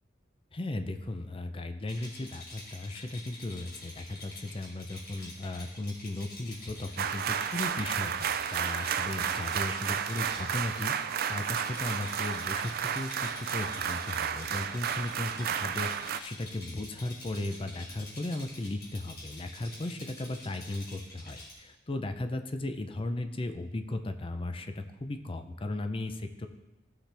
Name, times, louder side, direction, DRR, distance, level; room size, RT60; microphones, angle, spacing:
voice 1, 0.5-10.9 11.3-26.5, left 2 dB, 30° left, 7 dB, 0.6 m, -36 dB
Rattle, 1.8-21.5, left 2 dB, 60° left, 3.3 m, -48 dB
sound 1, 7.0-16.2, right 8 dB, 55° right, 0.4 m, -32 dB
15.0 x 5.8 x 3.4 m, 1.1 s
head